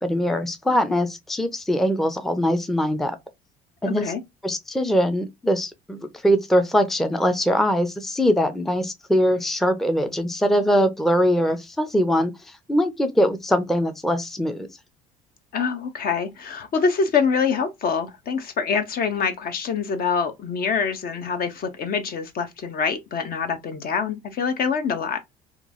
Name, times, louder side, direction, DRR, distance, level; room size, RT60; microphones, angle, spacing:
voice 1, 0.0-3.2 3.8-4.1 4.4-14.7, equal, ahead, 0.5 m, -22 dB
voice 2, 3.8-4.2 15.5-25.2, left 5 dB, 50° left, 0.7 m, -25 dB
2.9 x 2.3 x 2.4 m
hypercardioid pair, 70°, 20 cm